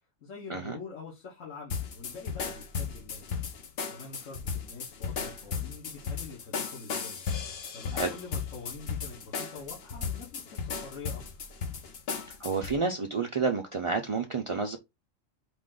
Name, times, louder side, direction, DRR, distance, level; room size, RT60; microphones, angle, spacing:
voice 1, 0.2-3.2 3.9-7.2 7.7-11.2, left 4 dB, 70° left, 1.6 m, -45 dB
sound 1, 1.7-12.8, left 6 dB, 55° left, 0.9 m, -35 dB
voice 2, 12.4-14.8, right 4 dB, 45° right, 0.4 m, -30 dB
5.0 x 2.6 x 3.7 m
omnidirectional pair, 1.4 m